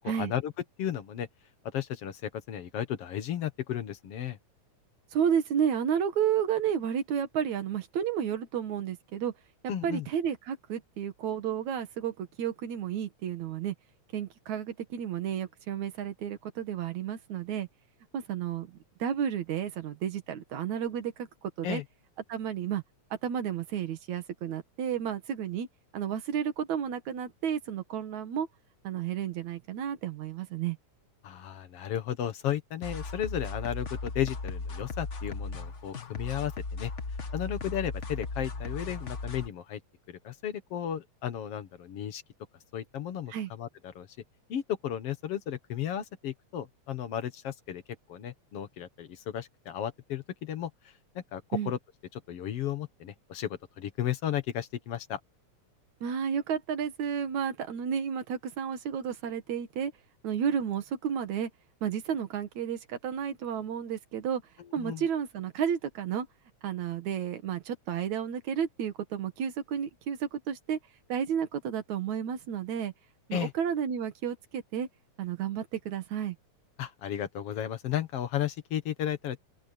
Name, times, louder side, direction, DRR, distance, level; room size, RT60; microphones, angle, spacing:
voice 1, 0.2-0.5 0.8-1.3 1.7-4.4 9.7-10.1 21.6-21.8 31.2-36.9 37.3-39.8 40.1-42.2 42.7-44.1 44.5-47.8 48.1-50.7 51.3-51.8 52.1-55.2 64.6-65.0 73.3-73.5 76.8-79.4, left 10 dB, 60° left, 2.3 m, -34 dB
voice 2, 5.1-9.3 9.8-13.7 14.1-17.7 18.1-21.8 22.3-22.8 23.2-25.7 25.9-28.5 28.8-30.8 43.3-43.5 51.5-51.7 56.0-59.9 60.2-61.5 61.8-64.4 64.7-66.3 66.6-70.8 71.1-72.9 73.3-74.9 75.2-76.4, right 8 dB, 75° right, 3.1 m, -32 dB
sound 1, 32.8-39.5, left 3 dB, 40° left, 1.0 m, -37 dB
open air
omnidirectional pair, 3.3 m